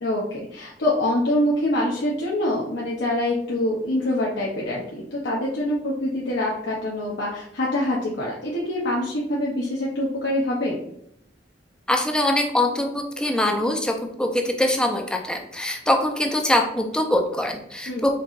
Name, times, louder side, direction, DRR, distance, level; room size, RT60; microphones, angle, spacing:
voice 1, 0.0-10.8 17.9-18.0, left 1 dB, 80° left, -4 dB, 0.7 m, -25 dB
voice 2, 11.9-18.1, left 1 dB, 5° left, 3 dB, 0.5 m, -23 dB
4.6 x 3.6 x 2.4 m, 0.74 s
head